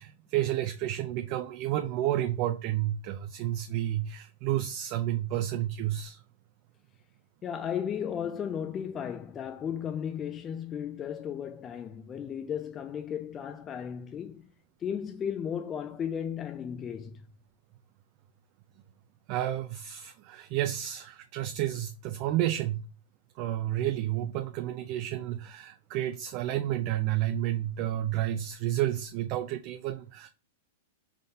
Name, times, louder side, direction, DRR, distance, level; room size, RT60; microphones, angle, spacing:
voice 1, 0.0-6.2 19.3-22.8 23.4-30.3, right 13 dB, 45° right, 0.4 m, -31 dB
voice 2, 7.4-14.5 14.8-17.3, left 8 dB, 25° left, 0.3 m, -35 dB
3.8 x 3.6 x 2.7 m
hypercardioid pair, 130°, 0 cm